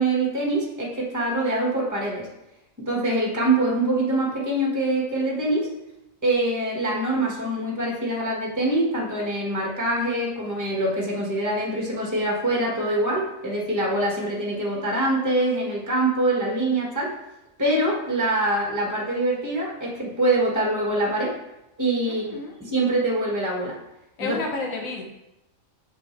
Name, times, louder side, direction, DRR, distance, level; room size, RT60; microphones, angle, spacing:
voice 1, 0.0-2.3 2.8-5.7 6.2-17.1 17.6-21.4 21.8-23.8 24.2-24.4, right 1 dB, 15° right, -3 dB, 1.8 m, -24 dB
voice 2, 22.1-22.6 24.2-25.0, left 3 dB, 90° left, 1 dB, 1.5 m, -31 dB
7.7 x 6.7 x 3.4 m, 0.91 s
omnidirectional pair, 1.4 m